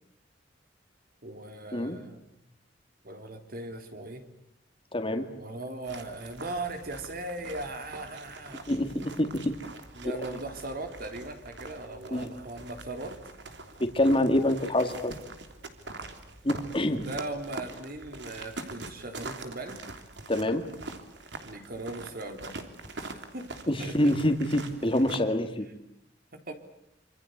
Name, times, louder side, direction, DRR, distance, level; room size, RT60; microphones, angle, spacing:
voice 1, 1.2-2.4 3.0-4.2 5.4-8.6 9.9-13.2 17.0-19.8 21.4-22.5 22.9-23.5 23.8-24.1 26.3-26.5, right 2 dB, 55° right, 6 dB, 3.7 m, -39 dB
voice 2, 4.9-5.3 8.7-9.5 12.1-12.3 13.8-15.1 16.4-17.1 20.3-20.7 23.7-25.7, left 1 dB, 30° left, 5 dB, 2.3 m, -26 dB
sound 1, 5.8-25.2, right 2 dB, 70° right, 3.3 m, -44 dB
26.5 x 26.0 x 8.2 m, 0.77 s
head